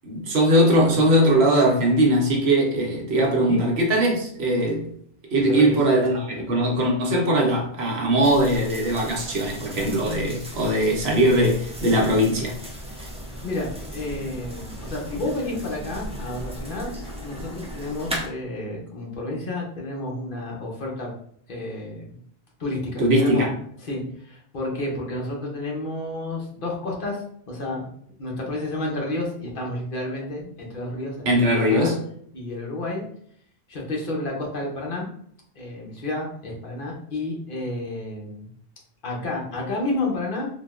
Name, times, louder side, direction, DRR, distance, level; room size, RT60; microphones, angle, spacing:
voice 1, 0.0-4.9 5.3-12.6 23.0-23.5 31.3-32.0, right 1 dB, 80° right, 1.1 m, -20 dB
voice 2, 3.2-3.6 5.4-5.8 12.8-13.1 13.4-16.9 17.2-21.1 21.5-22.2 22.6-23.5 23.8-27.9 28.2-31.9 32.3-33.0 33.7-35.1 35.6-38.5 39.0-40.5, left 2 dB, 60° left, 1.0 m, -30 dB
sound 1, 8.2-18.3, equal, 10° right, 0.3 m, -37 dB
3.7 x 2.2 x 2.4 m
omnidirectional pair, 1.1 m